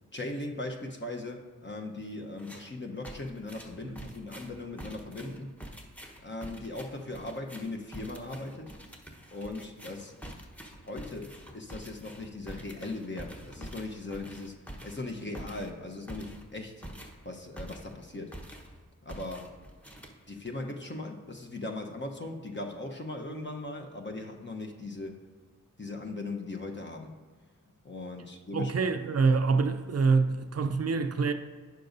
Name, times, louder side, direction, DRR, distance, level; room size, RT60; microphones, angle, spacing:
voice 1, 0.1-5.5 6.2-8.8 9.3-10.1 10.8-14.6 14.8-16.8 17.2-18.3 19.0-19.5 20.3-25.2 25.8-27.2 27.8-28.7, left 2 dB, 35° left, 0.9 m, -39 dB
sound 1, 2.4-2.7 3.0-18.0 18.3-18.8 19.1-20.5, equal, 5° left, 1.0 m, -46 dB
voice 2, 28.5-31.3, right 4 dB, 50° right, 0.5 m, -25 dB
9.2 x 6.5 x 2.6 m
cardioid pair, 40°, 33 cm